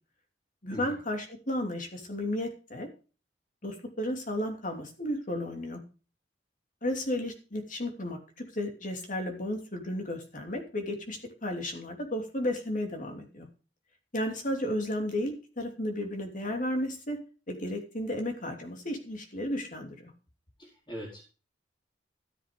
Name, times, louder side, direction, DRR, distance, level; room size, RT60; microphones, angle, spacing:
voice 1, 0.6-2.9 3.6-5.8 6.8-8.2 8.5-13.5 14.1-17.2 17.5-20.1, left 1 dB, 45° left, 4 dB, 2.9 m, -33 dB
voice 2, 20.6-21.2, equal, 25° left, -6 dB, 4.7 m, -41 dB
14.0 x 7.3 x 5.3 m, 0.35 s
head